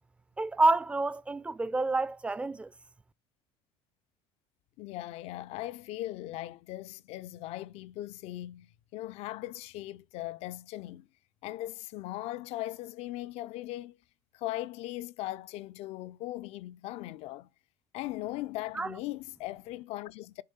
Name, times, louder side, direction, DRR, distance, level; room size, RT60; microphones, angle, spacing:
voice 1, 0.4-2.7 18.8-18.9, right 2 dB, 10° right, 0.4 m, -28 dB
voice 2, 4.8-11.1 11.4-14.0 14.3-17.5 17.9-20.4, left 15 dB, 65° left, 0.4 m, -39 dB
6.7 x 3.5 x 5.3 m
supercardioid pair, 105°, 11 cm